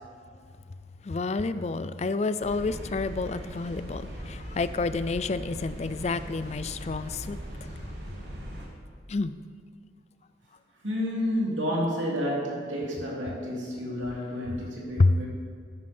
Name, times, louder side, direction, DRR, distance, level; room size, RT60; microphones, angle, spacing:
voice 1, 1.0-7.9 9.1-9.4 15.0-15.2, left 3 dB, 35° left, 13 dB, 0.4 m, -29 dB
sound 1, 2.4-8.7, equal, 55° right, 2.0 m, -39 dB
voice 2, 10.8-15.3, equal, 90° right, -4 dB, 2.9 m, -30 dB
11.5 x 9.6 x 4.4 m, 2.3 s
head